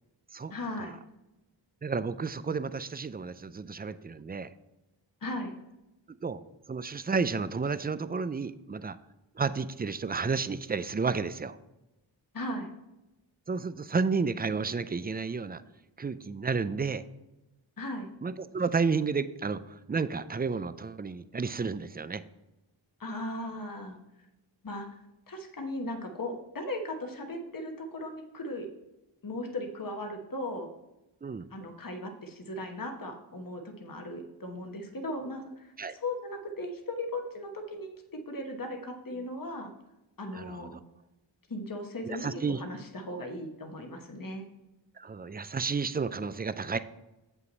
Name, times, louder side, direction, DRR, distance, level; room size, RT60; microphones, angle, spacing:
voice 1, 0.5-1.0 5.2-5.5 12.3-12.7 17.8-18.1 23.0-24.0 24.6-24.9 25.3-28.7 29.2-30.7 31.5-35.7 36.0-39.7 40.2-40.8 41.5-44.5, left 1 dB, 45° left, 3 dB, 1.1 m, -37 dB
voice 2, 1.8-4.5 6.2-6.4 6.7-9.0 9.4-11.6 13.5-15.6 16.0-17.0 18.2-22.2 31.2-31.5 35.8-35.9 40.3-40.8 42.0-42.6 45.0-46.8, right 5 dB, 25° right, 14 dB, 0.3 m, -31 dB
7.8 x 5.7 x 4.0 m, 0.96 s
wide cardioid pair, 65°, 47 cm